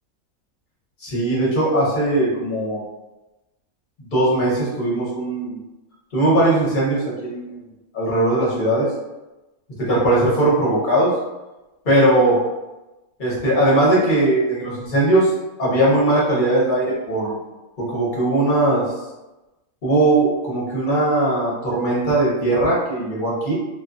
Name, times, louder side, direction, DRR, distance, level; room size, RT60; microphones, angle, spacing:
voice 1, 1.0-2.8 4.0-5.6 6.1-7.6 7.9-8.9 9.8-11.1 11.8-12.4 13.2-15.3 15.6-17.4 17.8-18.8 19.8-23.5, right 1 dB, 40° left, -7 dB, 1.0 m, -19 dB
2.5 x 2.2 x 2.5 m, 1.0 s
omnidirectional pair, 1.5 m